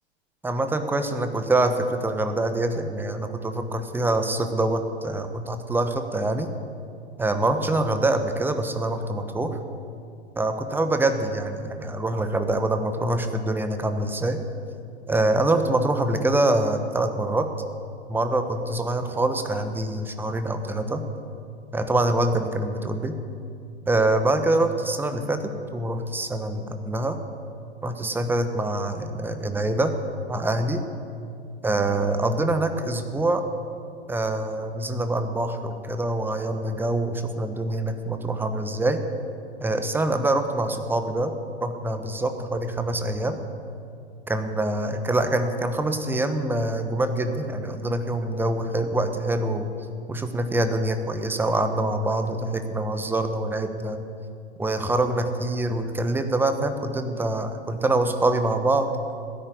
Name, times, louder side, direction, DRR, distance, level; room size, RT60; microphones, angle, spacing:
voice 1, 0.4-6.5 7.2-9.6 10.4-14.4 15.1-17.5 18.1-21.0 21.7-23.1 23.9-27.2 27.8-29.9 30.3-30.8 31.6-33.4 34.1-39.0 39.6-41.3 41.6-43.4 44.3-49.7 50.1-54.0 54.6-58.9, right 2 dB, 5° right, 8 dB, 1.0 m, -25 dB
15.5 x 9.9 x 8.7 m, 2.5 s
figure-of-eight pair, 105°, 33 cm